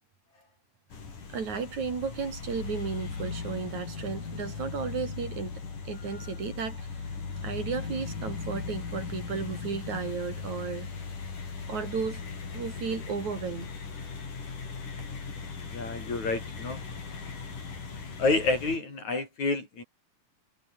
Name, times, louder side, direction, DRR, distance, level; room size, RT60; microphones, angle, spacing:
sound 1, 0.9-18.8, left 5 dB, 85° left, 6.9 m, -38 dB
voice 1, 1.3-5.5 5.9-7.0 7.4-10.9 11.7-12.2 12.5-13.7, right 5 dB, 65° right, 5.0 m, -34 dB
voice 2, 15.7-16.8 18.2-19.8, left 3 dB, 65° left, 9.0 m, -29 dB
omnidirectional pair, 3.6 m